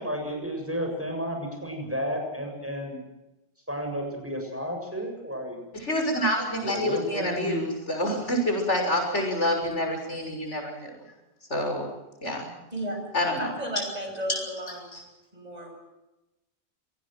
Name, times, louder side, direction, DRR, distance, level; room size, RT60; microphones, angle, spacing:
voice 1, 0.0-3.0 3.7-5.6 6.6-7.7, equal, 10° right, 2 dB, 7.5 m, -32 dB
voice 2, 5.7-11.0 11.5-11.9 12.2-12.5 13.1-13.5 14.3-14.4 14.9-15.0, left 1 dB, 85° left, 4 dB, 6.8 m, -27 dB
voice 3, 13.4-15.0 15.3-15.7, right 1 dB, 35° right, 3 dB, 7.4 m, -34 dB
26.0 x 19.0 x 7.7 m, 0.98 s
omnidirectional pair, 1.2 m